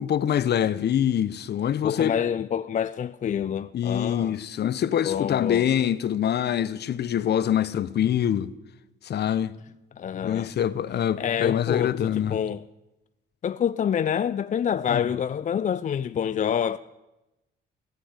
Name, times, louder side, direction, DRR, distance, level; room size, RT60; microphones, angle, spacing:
voice 1, 0.0-2.1 3.7-8.5 9.0-9.5 10.2-12.4 14.9-15.0, left 10 dB, 55° left, 0.8 m, -25 dB
voice 2, 1.8-4.4 5.0-5.6 10.0-10.5 11.2-12.6 13.4-16.8, left 8 dB, 40° left, 0.4 m, -27 dB
16.5 x 9.9 x 8.1 m
cardioid pair, 90°, 20 cm